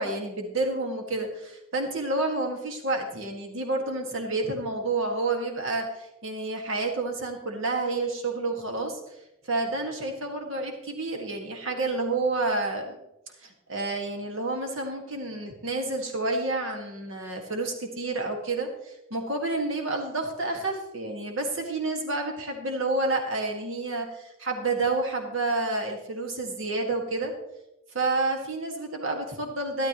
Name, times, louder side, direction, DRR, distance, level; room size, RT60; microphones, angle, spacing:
voice 1, 0.0-9.0 9.4-13.0 13.4-27.3 27.9-29.9, right 2 dB, 60° right, 2 dB, 1.9 m, -29 dB
12.5 x 12.0 x 3.0 m, 0.90 s
head